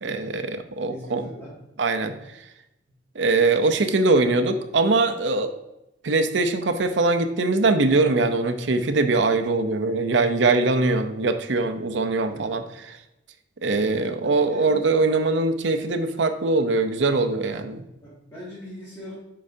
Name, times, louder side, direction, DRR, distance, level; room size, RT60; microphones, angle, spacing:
voice 1, 0.0-1.2 1.8-2.2 3.1-5.5 6.0-12.6 12.9-13.0 13.6-17.8, right 3 dB, 70° right, 8 dB, 0.6 m, -22 dB
voice 2, 0.8-1.6 12.3-12.7 14.2-14.7 18.0-19.1, left 1 dB, 15° left, -9 dB, 2.0 m, -40 dB
8.4 x 5.6 x 2.7 m, 0.89 s
head